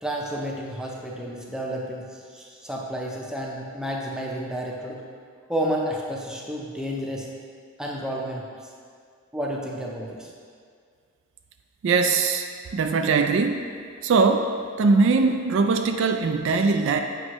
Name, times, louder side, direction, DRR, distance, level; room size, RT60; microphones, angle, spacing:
voice 1, 0.0-5.0 5.5-7.3 7.8-8.5 9.3-10.3, equal, 5° right, -2 dB, 0.6 m, -31 dB
voice 2, 11.8-12.5 12.7-13.6 14.0-14.5 14.8-17.0, right 4 dB, 60° right, 6 dB, 0.3 m, -21 dB
7.8 x 5.4 x 3.0 m, 2.1 s
head